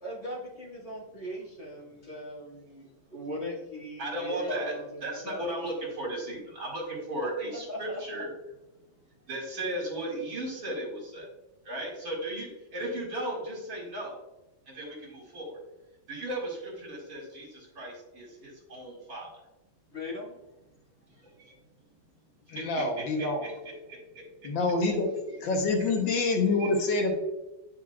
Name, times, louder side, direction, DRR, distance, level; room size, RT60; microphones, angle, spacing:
voice 1, 0.0-5.5 7.2-8.0 9.2-9.3 19.9-20.4, equal, 35° left, -5 dB, 2.1 m, -39 dB
voice 2, 4.0-4.7 5.0-8.3 9.3-11.3 11.6-14.2 14.7-15.6 16.1-19.3 21.2-21.5 22.5-23.5 23.9-24.5 25.2-25.4 25.8-26.2 26.6-26.7, right 1 dB, 50° right, -2 dB, 2.4 m, -36 dB
voice 3, 22.5-23.4 24.4-25.1 25.4-27.2, left 3 dB, 75° left, 3 dB, 1.7 m, -26 dB
9.9 x 5.0 x 2.3 m, 1.0 s
omnidirectional pair, 2.1 m